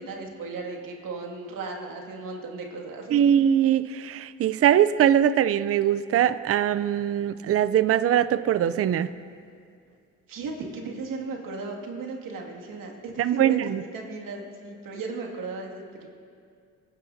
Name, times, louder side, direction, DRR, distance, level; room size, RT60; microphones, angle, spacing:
voice 1, 0.0-3.3 10.3-15.8, right 3 dB, 70° right, 0 dB, 2.2 m, -36 dB
voice 2, 3.1-9.1 13.2-13.8, right 10 dB, 45° right, 14 dB, 0.5 m, -22 dB
26.0 x 9.9 x 2.7 m, 2.3 s
supercardioid pair, 75°, 35 cm